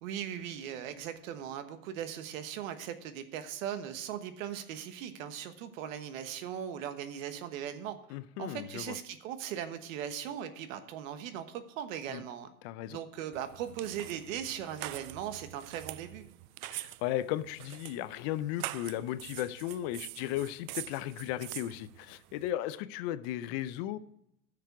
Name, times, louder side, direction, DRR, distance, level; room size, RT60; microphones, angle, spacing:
voice 1, 0.0-8.0 8.4-12.5 12.9-16.2, right 9 dB, 65° right, 9 dB, 1.4 m, -39 dB
voice 2, 8.1-8.9 12.1-12.2 12.6-13.0 16.7-24.0, left 13 dB, 50° left, 15 dB, 0.6 m, -35 dB
sound 1, 13.3-22.5, right 17 dB, 85° right, 0.5 m, -45 dB
11.5 x 6.7 x 4.7 m, 0.76 s
supercardioid pair, 135°, 42 cm